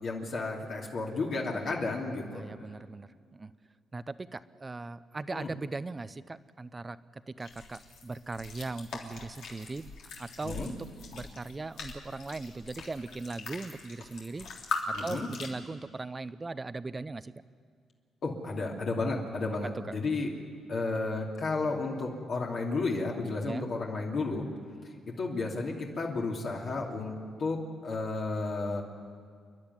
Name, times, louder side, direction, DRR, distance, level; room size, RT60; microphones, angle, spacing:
voice 1, 0.0-2.4 5.3-5.5 10.4-10.7 14.9-15.3 18.2-20.3 20.7-24.4 25.1-27.6 27.8-28.8, left 3 dB, 55° left, -2 dB, 3.0 m, -32 dB
voice 2, 2.3-3.5 3.9-7.0 7.3-9.9 10.2-10.8 11.1-14.5 14.9-17.3 19.8-19.9 23.5-23.7, right 3 dB, 25° right, 14 dB, 0.7 m, -39 dB
sound 1, 7.4-15.5, left 4 dB, 75° left, 3.3 m, -41 dB
29.0 x 11.0 x 9.6 m, 2.1 s
cardioid pair, 90°, 0 cm